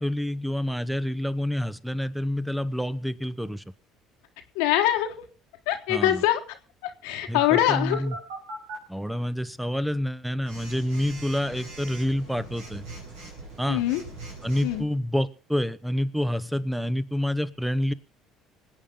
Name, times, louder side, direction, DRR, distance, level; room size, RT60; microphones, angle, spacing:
voice 1, 0.0-3.6 5.9-6.2 7.3-8.2 8.9-12.8 13.6-13.8 14.4-17.9, equal, 5° right, 16 dB, 1.0 m, -28 dB
voice 2, 4.5-5.1 5.7-6.4 6.8-8.0 13.7-14.0 14.6-14.8, left 13 dB, 75° left, 6 dB, 1.3 m, -23 dB
Telephone, 7.4-8.8 10.5-14.8, right 3 dB, 80° right, 4.8 m, -40 dB
25.5 x 8.7 x 3.8 m, 0.36 s
hypercardioid pair, 65°, 0 cm